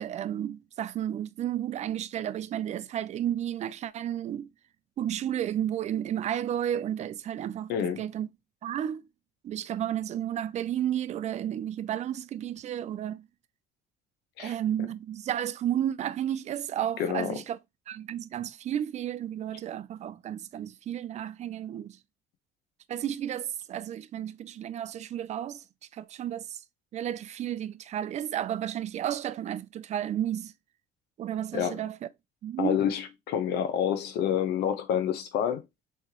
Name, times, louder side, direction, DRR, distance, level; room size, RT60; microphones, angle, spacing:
voice 1, 0.0-4.5 5.0-8.3 8.6-9.0 9.4-13.3 14.4-17.6 17.9-22.0 22.9-25.6 25.9-26.6 26.9-30.5 31.2-32.0 32.4-32.8, right 10 dB, 45° right, 0.4 m, -32 dB
voice 2, 7.7-8.0 14.4-14.6 17.0-17.4 31.5-31.8 32.6-35.6, left 9 dB, 80° left, 0.7 m, -28 dB
3.5 x 3.2 x 2.8 m
cardioid pair, 110°, 17 cm